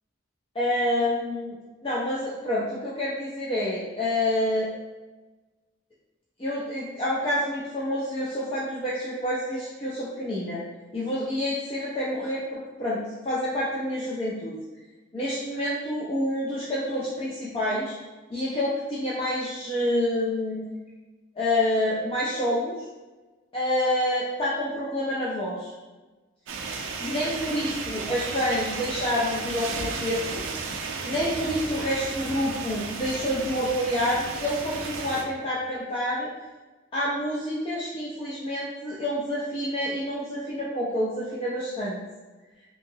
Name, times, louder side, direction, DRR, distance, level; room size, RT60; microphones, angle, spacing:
voice 1, 0.6-1.5 1.8-4.7 6.4-10.6 10.9-13.0 13.2-14.6 15.1-17.9 18.3-20.7 21.4-22.8 23.5-25.7 27.0-30.6 31.0-36.3 36.9-42.0, left 1 dB, 25° left, -7 dB, 0.4 m, -28 dB
sound 1, 26.5-35.2, right 4 dB, 70° right, 0.4 m, -34 dB
2.7 x 2.7 x 2.7 m, 1.2 s
head